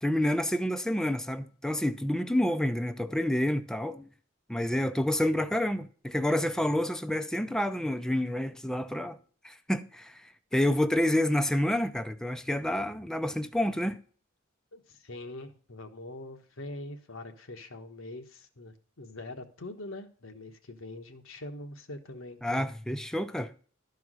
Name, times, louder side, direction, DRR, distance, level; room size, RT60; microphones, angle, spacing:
voice 1, 0.0-4.1 4.5-9.2 9.4-14.0 22.4-23.5, left 1 dB, 5° left, 0.4 m, -28 dB
voice 2, 14.7-22.7, left 2 dB, 85° left, 1.3 m, -43 dB
12.0 x 4.7 x 6.2 m
head